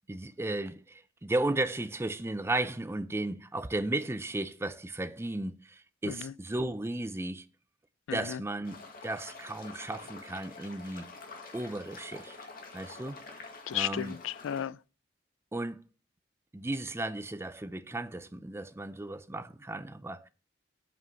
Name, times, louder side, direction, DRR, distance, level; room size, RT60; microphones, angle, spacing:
voice 1, 0.1-7.5 8.1-11.1 11.5-12.4 12.7-14.2 15.5-15.8 16.5-20.3, right 2 dB, 15° right, 0.5 m, -35 dB
voice 2, 8.1-8.4 13.7-14.8, left 10 dB, 85° left, 0.3 m, -34 dB
sound 1, 8.6-14.7, left 3 dB, 50° left, 1.9 m, -47 dB
7.7 x 5.5 x 6.9 m
head